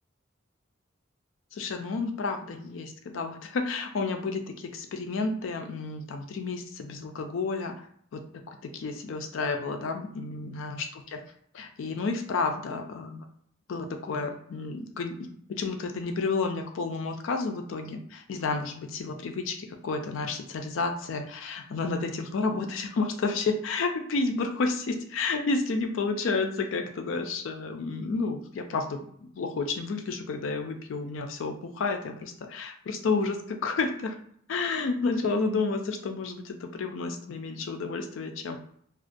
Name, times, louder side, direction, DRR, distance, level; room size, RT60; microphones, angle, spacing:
voice 1, 1.5-7.7 8.1-11.2 11.5-13.3 13.7-34.2 34.5-38.6, left 4 dB, 75° left, 5 dB, 0.4 m, -31 dB
2.3 x 2.1 x 2.5 m, 0.66 s
head